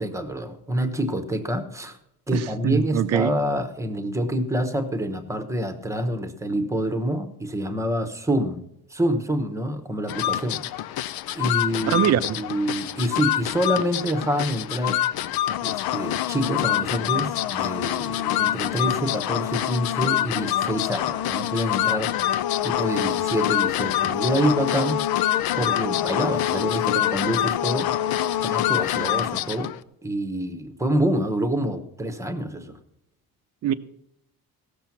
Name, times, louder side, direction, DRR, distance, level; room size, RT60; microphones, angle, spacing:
voice 1, 0.0-2.0 2.3-8.6 8.9-10.6 11.3-12.0 12.4-15.0 15.6-22.1 22.6-25.0 25.6-27.9 28.4-29.7 30.0-32.8, right 1 dB, 10° right, 8 dB, 0.9 m, -27 dB
voice 2, 2.3-3.3 11.8-12.4 33.6-33.7, right 10 dB, 45° right, 10 dB, 0.6 m, -23 dB
sound 1, 10.1-29.8, left 12 dB, 80° left, 0.6 m, -25 dB
17.0 x 6.8 x 5.8 m, 0.79 s
cardioid pair, 175°, 36 cm